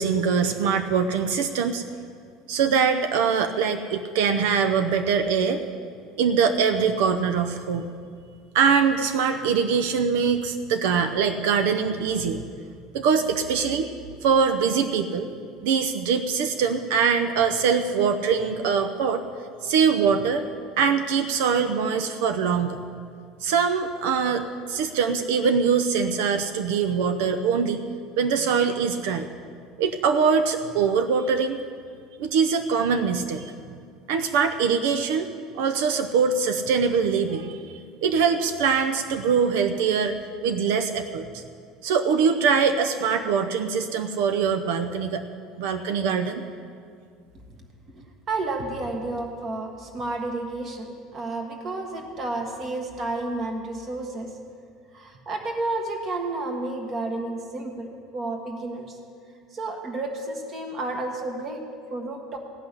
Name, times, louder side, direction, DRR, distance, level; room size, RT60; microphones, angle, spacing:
voice 1, 0.0-1.8 2.5-5.6 6.2-7.9 8.5-12.4 12.9-13.9 14.2-15.3 15.6-19.2 19.6-20.5 20.8-22.8 23.4-24.4 24.7-27.8 28.2-29.3 29.8-31.6 32.2-33.4 34.1-35.3 35.5-37.7 38.0-40.2 40.4-41.4 41.8-45.2 45.6-46.4, right 6 dB, 75° right, 7 dB, 0.7 m, -23 dB
voice 2, 47.6-54.3 54.9-59.0 59.5-61.6 61.9-62.4, right 2 dB, 25° right, 3 dB, 1.5 m, -31 dB
16.0 x 6.0 x 9.9 m, 2.2 s
cardioid pair, 175°, 0 cm